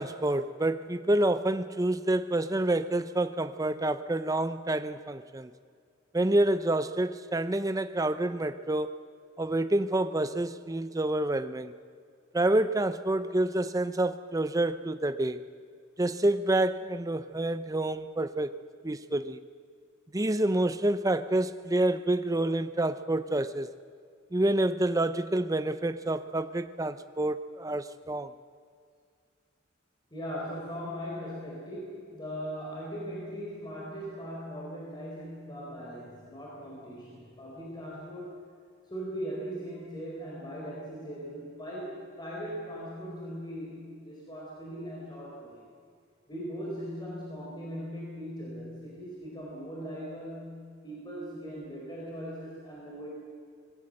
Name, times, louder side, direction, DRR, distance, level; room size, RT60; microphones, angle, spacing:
voice 1, 0.0-5.5 6.1-9.0 9.4-11.7 12.3-15.4 16.0-18.5 18.8-19.4 20.1-23.7 24.3-28.3, right 1 dB, 15° right, 0.6 m, -28 dB
voice 2, 30.1-38.4 38.9-45.6 46.3-53.1, equal, 20° left, 4.8 m, -39 dB
25.0 x 21.0 x 7.8 m
head